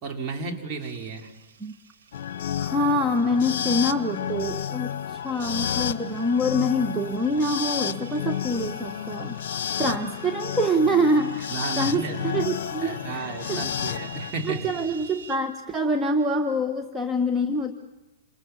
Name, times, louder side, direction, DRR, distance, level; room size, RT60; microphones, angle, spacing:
voice 1, 0.0-1.3 10.3-10.4 11.5-12.2 12.8-14.7, right 3 dB, 35° right, 2 dB, 3.8 m, -33 dB
sound 1, 0.8-15.3, right 6 dB, 60° right, 3.0 m, -49 dB
sound 2, 2.1-14.3, left 9 dB, 55° left, 1.0 m, -31 dB
voice 2, 2.6-9.4 9.8-13.9 14.4-17.7, equal, 10° right, 4 dB, 1.4 m, -25 dB
28.0 x 27.5 x 7.1 m, 1.0 s
figure-of-eight pair, 105°, 0 cm